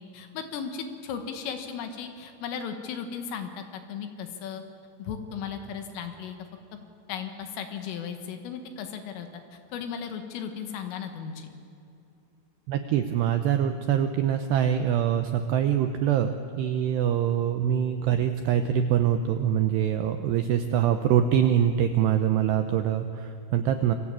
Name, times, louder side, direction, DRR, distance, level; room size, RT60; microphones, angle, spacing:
voice 1, 0.0-4.6 5.0-6.4 7.1-11.5, left 7 dB, 75° left, 6 dB, 4.0 m, -36 dB
voice 2, 12.7-24.0, right 9 dB, 80° right, 8 dB, 2.5 m, -24 dB
27.5 x 22.5 x 8.8 m, 2.6 s
omnidirectional pair, 5.9 m